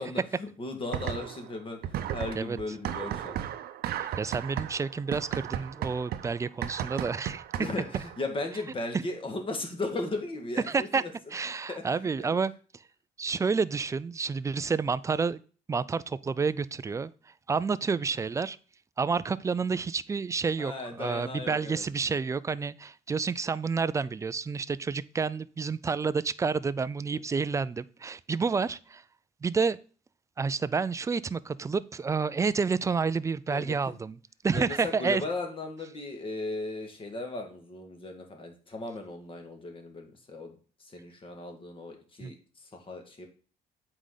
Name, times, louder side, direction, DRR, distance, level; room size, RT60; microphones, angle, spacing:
voice 1, 0.0-1.8 2.1-3.4 7.6-11.1 11.7-11.8 12.2-12.4 20.6-21.8 33.5-33.9 34.5-40.6 40.8-42.3 42.9-43.3, left 2 dB, 30° left, 1.8 m, -36 dB
sound 1, 0.9-1.5 1.8-8.3, right 11 dB, 65° right, 0.7 m, -35 dB
voice 2, 4.0-7.4 7.9-8.0 10.7-11.0 11.3-12.5 13.2-15.4 15.7-17.1 17.5-18.6 19.0-29.0 29.4-29.8 30.4-34.2 34.4-35.2 42.2-42.3, right 5 dB, 20° right, 0.3 m, -29 dB
8.1 x 4.9 x 3.9 m
cardioid pair, 110°, 17 cm